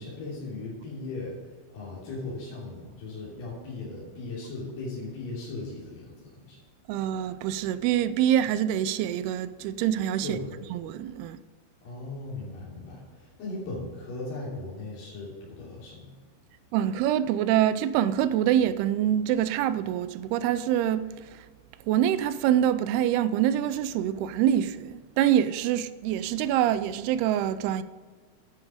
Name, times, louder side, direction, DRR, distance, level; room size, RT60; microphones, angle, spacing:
voice 1, 0.0-6.6 10.2-10.6 11.8-16.1, left 2 dB, 70° left, 5.0 m, -38 dB
voice 2, 6.9-10.4 10.7-11.4 16.7-21.5 21.9-27.8, right 11 dB, 85° right, 2.4 m, -25 dB
10.5 x 9.3 x 5.0 m
omnidirectional pair, 4.8 m